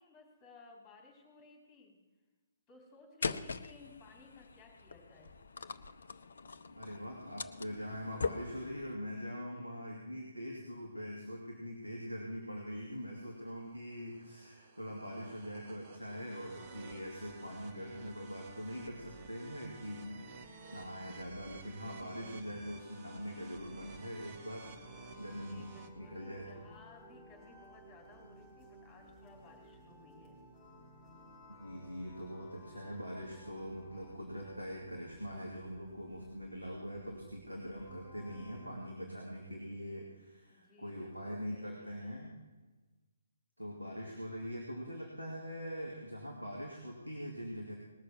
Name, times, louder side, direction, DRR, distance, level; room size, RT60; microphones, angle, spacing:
voice 1, 0.0-1.9 2.7-5.3 25.5-30.4 40.5-42.3, left 3 dB, 15° left, 2 dB, 3.8 m, -59 dB
sound 1, 3.2-8.9, left 4 dB, 60° left, 0.7 m, -42 dB
voice 2, 6.7-20.1 20.4-24.7 25.2-25.7 25.9-26.6 31.6-42.3 43.6-47.7, equal, 85° right, -3 dB, 2.6 m, -43 dB
sound 2, 12.9-25.9, right 4 dB, 30° right, 1.3 m, -53 dB
sound 3, 24.6-38.8, equal, 10° right, 4.9 m, -57 dB
20.0 x 6.7 x 7.2 m, 1.3 s
figure-of-eight pair, 130°, 0 cm